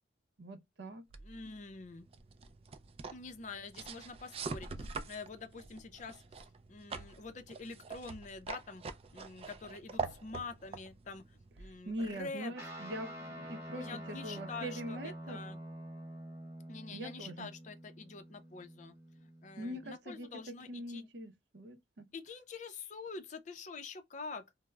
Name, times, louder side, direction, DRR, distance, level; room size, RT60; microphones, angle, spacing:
voice 1, 0.4-1.0 11.9-15.5 16.9-17.5 19.6-22.1, equal, 75° right, 0.6 m, -43 dB
sound 1, 1.1-12.2, right 4 dB, 35° right, 0.3 m, -45 dB
voice 2, 1.2-2.1 3.1-8.8 9.1-12.5 13.7-15.6 16.7-21.1 22.1-24.4, left 4 dB, 40° left, 0.5 m, -46 dB
Guitar, 12.6-20.2, right 1 dB, 15° right, 0.9 m, -47 dB
2.2 x 2.0 x 3.1 m
head